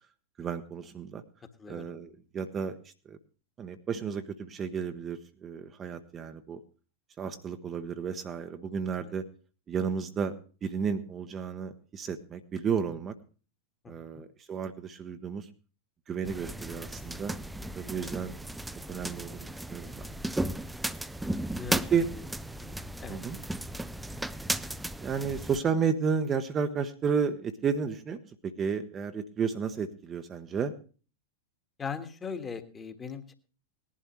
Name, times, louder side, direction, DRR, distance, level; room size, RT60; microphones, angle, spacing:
voice 1, 0.4-1.2 1.7-2.7 3.0-3.2 3.6-6.6 7.2-9.2 9.7-10.3 10.6-13.2 13.9-15.5 16.1-17.3 17.7-18.3 18.9-20.1 21.9-22.0 23.1-23.4 25.0-30.7, right 6 dB, 25° right, 8 dB, 0.9 m, -32 dB
voice 2, 13.8-14.2 21.5-21.9 22.6-22.7 23.0-23.2 31.8-33.3, left 6 dB, 20° left, 8 dB, 1.6 m, -39 dB
sound 1, 16.3-25.6, right 1 dB, 5° right, 0.5 m, -35 dB
19.5 x 11.5 x 3.1 m, 0.38 s
figure-of-eight pair, 90°, 0 cm